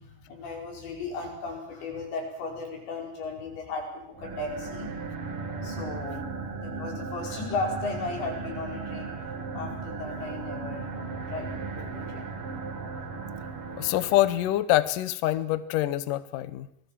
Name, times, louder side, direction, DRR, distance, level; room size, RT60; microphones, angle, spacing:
voice 1, 0.0-4.9 5.6-6.3 6.6-9.1 9.5-10.9 11.3-12.3, left 3 dB, 90° left, 1 dB, 7.6 m, -35 dB
sound 1, 4.1-14.6, right 4 dB, 40° right, 2.7 m, -36 dB
voice 2, 13.8-16.7, left 14 dB, 70° left, 13 dB, 2.2 m, -25 dB
27.0 x 19.5 x 7.5 m, 0.72 s
omnidirectional pair, 4.9 m